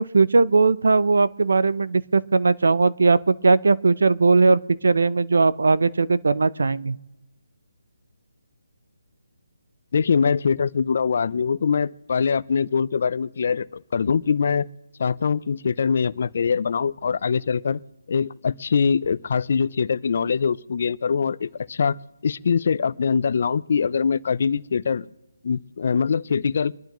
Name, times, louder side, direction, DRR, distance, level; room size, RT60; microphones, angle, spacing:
voice 1, 0.0-7.0, right 3 dB, 70° right, 16 dB, 0.6 m, -19 dB
voice 2, 9.9-14.7 15.0-17.8 18.1-22.0 22.2-25.0 25.4-26.7, left 6 dB, 50° left, 18 dB, 0.4 m, -23 dB
25.5 x 11.5 x 3.0 m, 1.1 s
hypercardioid pair, 165°, 0 cm